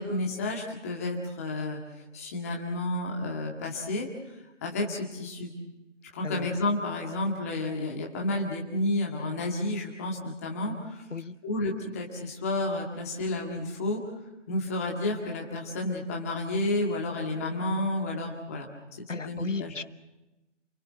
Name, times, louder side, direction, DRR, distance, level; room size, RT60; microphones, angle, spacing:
voice 1, 0.0-1.8 2.1-4.1 4.6-5.5 6.1-11.0 11.4-14.0 14.5-19.7, left 2 dB, 15° left, 0 dB, 1.9 m, -31 dB
voice 2, 19.1-19.8, left 4 dB, 90° left, 15 dB, 1.1 m, -34 dB
29.0 x 21.0 x 6.4 m, 1.0 s
figure-of-eight pair, 160°, 36 cm